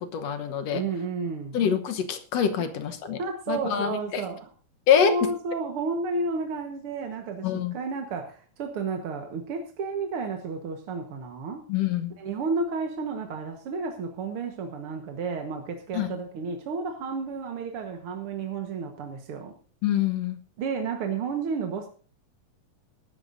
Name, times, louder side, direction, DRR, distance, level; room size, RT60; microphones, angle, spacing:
voice 1, 0.0-0.8 1.5-3.2 3.5-4.2 4.9-5.1 7.4-7.7 11.7-12.2 15.9-16.1 19.8-20.4, left 8 dB, 65° left, 1.7 m, -25 dB
voice 2, 0.7-1.6 3.2-4.5 5.0-11.6 12.2-19.5 20.6-21.9, right 4 dB, 55° right, 1.6 m, -31 dB
22.5 x 12.5 x 2.6 m
omnidirectional pair, 4.1 m